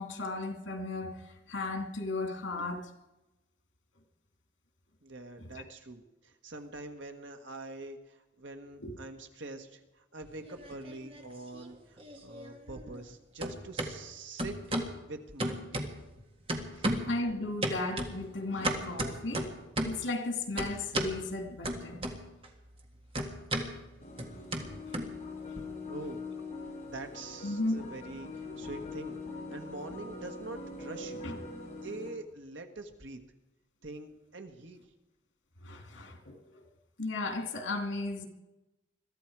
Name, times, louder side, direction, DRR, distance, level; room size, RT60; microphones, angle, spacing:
voice 1, 0.0-2.9 5.4-5.6 8.8-9.0 17.1-22.0 27.4-27.9 31.2-31.4 35.6-36.6 37.0-38.3, left 2 dB, 85° left, 2.5 m, -35 dB
voice 2, 5.0-14.6 14.8-15.9 16.7-16.9 25.8-26.3 26.9-29.2 29.5-31.2 31.8-33.2 33.8-34.9, right 2 dB, 85° right, 1.6 m, -44 dB
sound 1, 10.3-11.2 11.5-13.1 13.4-13.9 14.4-15.0 15.4-16.2 16.5-17.2 17.6-20.1 20.6-21.2 21.6-22.5 22.7-25.6, right 1 dB, 30° right, 1.8 m, -35 dB
sound 2, 24.0-32.1, left 3 dB, 40° left, 4.4 m, -43 dB
22.5 x 13.5 x 4.7 m
head